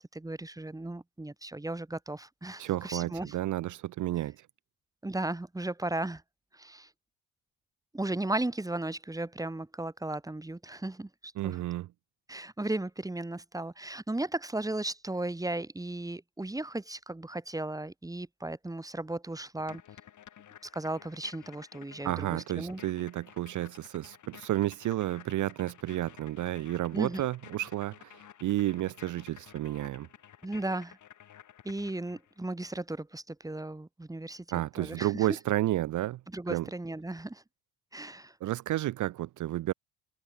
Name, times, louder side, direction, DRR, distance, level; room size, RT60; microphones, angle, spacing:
voice 1, 0.0-3.3 5.0-6.2 6.5-6.9 7.9-11.6 12.3-19.8 20.7-22.8 26.9-27.2 30.4-31.0 31.6-35.3 36.3-37.4 37.9-38.3, right 2 dB, 10° right, 5.3 m, -36 dB
voice 2, 2.6-4.5 11.4-11.9 22.0-30.1 34.5-36.2 36.5-36.7 38.4-39.7, right 15 dB, 45° right, 0.7 m, -31 dB
sound 1, 19.6-32.4, left 10 dB, 45° left, 4.7 m, -53 dB
cardioid pair, 130°, 40 cm